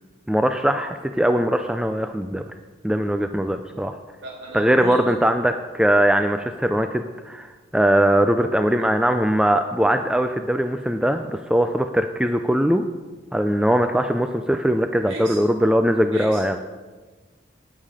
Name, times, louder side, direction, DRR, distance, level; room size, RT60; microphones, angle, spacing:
voice 1, 0.3-2.4 2.8-3.9 4.5-12.9 13.3-16.6, equal, 5° right, 7 dB, 0.4 m, -21 dB
voice 2, 4.2-5.1 15.1-15.4 16.1-16.6, right 1 dB, 85° right, -9 dB, 4.7 m, -35 dB
18.5 x 7.5 x 4.9 m, 1.3 s
head